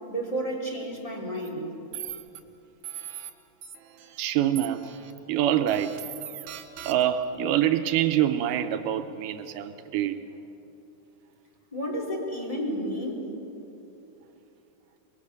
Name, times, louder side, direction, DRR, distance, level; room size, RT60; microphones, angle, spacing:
voice 1, 0.1-1.6 11.7-13.3, right 1 dB, 10° left, -2 dB, 3.3 m, -31 dB
sound 1, 1.3-1.5 1.9-2.4 2.8-3.3 3.6-4.2 4.6-5.1 5.7-7.2, right 11 dB, 70° right, 2.4 m, -40 dB
voice 2, 4.2-4.9 5.3-5.9 6.9-10.2, right 11 dB, 85° right, 8 dB, 2.3 m, -25 dB
25.5 x 21.5 x 6.7 m, 2.9 s
omnidirectional pair, 3.7 m